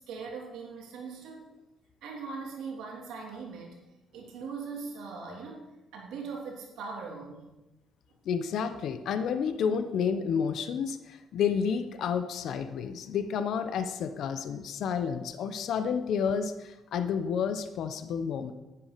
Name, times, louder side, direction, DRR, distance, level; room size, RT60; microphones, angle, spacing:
voice 1, 0.0-1.4 2.0-3.8 4.1-5.6 5.9-7.5, right 5 dB, 85° right, -1 dB, 3.1 m, -40 dB
voice 2, 8.3-18.5, left 7 dB, 75° left, 9 dB, 1.0 m, -30 dB
9.9 x 9.2 x 6.8 m, 1.0 s
cardioid pair, 90°, 0 cm